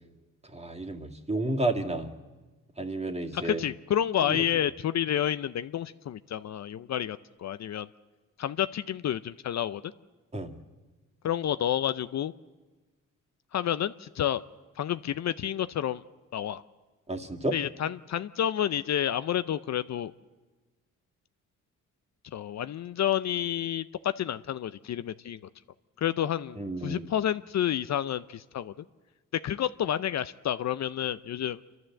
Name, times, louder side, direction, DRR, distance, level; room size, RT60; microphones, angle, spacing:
voice 1, 0.5-2.1 2.8-3.6 4.3-4.4 10.3-10.5 17.1-17.6 26.6-27.1, right 2 dB, 20° right, 2 dB, 2.2 m, -31 dB
voice 2, 3.3-7.9 8.4-9.9 11.2-12.3 13.5-14.4 14.8-16.0 16.3-16.6 17.5-20.1 22.3-25.4 26.0-28.7 29.4-31.6, left 10 dB, 55° left, 13 dB, 0.6 m, -30 dB
27.5 x 12.5 x 7.6 m, 1.2 s
cardioid pair, 70°, 33 cm